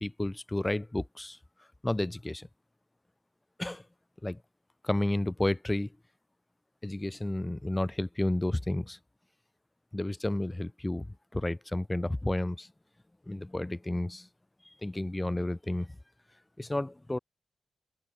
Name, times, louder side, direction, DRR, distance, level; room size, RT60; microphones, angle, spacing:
voice 1, 0.0-1.4 1.8-2.5 3.6-3.8 4.2-4.4 4.8-5.9 6.8-9.0 9.9-12.7 13.3-14.3 14.8-15.9 16.6-17.2, left 1 dB, 10° left, 0.4 m, -31 dB
wide cardioid pair, 145°, 0 cm